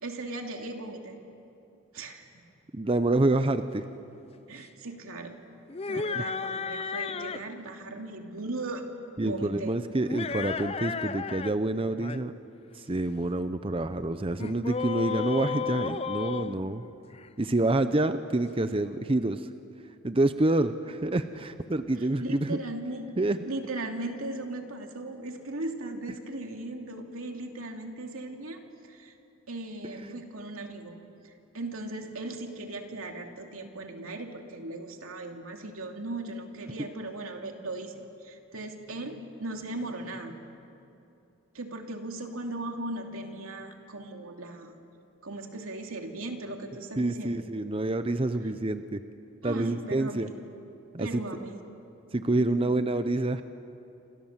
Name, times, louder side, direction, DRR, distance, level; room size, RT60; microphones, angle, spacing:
voice 1, 0.0-1.2 1.9-2.4 4.5-5.4 5.9-8.8 9.2-9.7 22.0-23.2 23.5-29.2 29.5-31.0 31.2-40.4 41.5-44.8 45.2-47.3 49.4-50.4 51.0-51.6 52.4-52.7, right 2 dB, 85° right, 3 dB, 2.7 m, -38 dB
voice 2, 2.7-3.8 6.1-6.2 9.2-12.3 12.8-16.8 17.4-19.5 20.0-22.6 23.2-23.4 30.0-30.2 47.0-49.0 49.4-50.3 50.9-51.1 52.1-53.4, right 2 dB, 25° right, 10 dB, 0.7 m, -27 dB
sound 1, 5.7-7.5 10.0-11.5 11.8-12.2 14.4-17.3, left 5 dB, 30° left, 0.6 m, -33 dB
28.5 x 26.0 x 7.4 m, 2.7 s
head